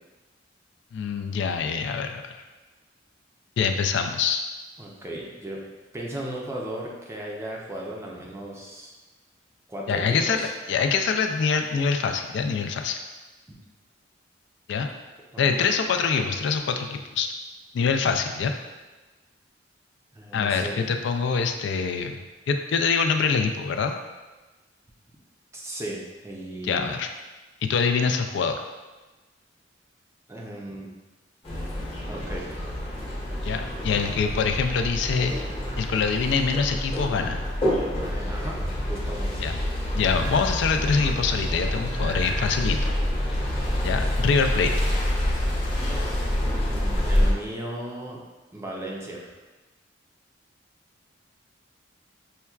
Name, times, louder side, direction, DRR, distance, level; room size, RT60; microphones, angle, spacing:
voice 1, 0.9-2.3 3.6-4.4 9.9-13.0 14.7-14.9 15.4-17.3 17.7-18.5 20.3-22.2 22.5-23.9 26.6-27.1 27.6-28.6 33.4-35.5 35.8-37.4 39.4-39.5 39.9-42.9 43.8-44.7, left 5 dB, 65° left, 5 dB, 0.3 m, -25 dB
voice 2, 4.8-5.6 5.9-8.9 9.7-10.5 13.5-13.6 14.8-14.9 15.3-15.7 20.1-20.8 25.5-26.9 30.3-31.0 32.1-32.5 38.0-38.6 38.9-39.4 46.2-48.2 48.5-49.3, right 1 dB, 15° right, -2 dB, 0.5 m, -36 dB
sound 1, 31.4-47.3, left 1 dB, 35° left, 0.9 m, -27 dB
sound 2, 40.1-40.5 41.8-42.7, right 3 dB, 85° right, 0.4 m, -38 dB
5.5 x 2.2 x 2.3 m, 1.2 s
head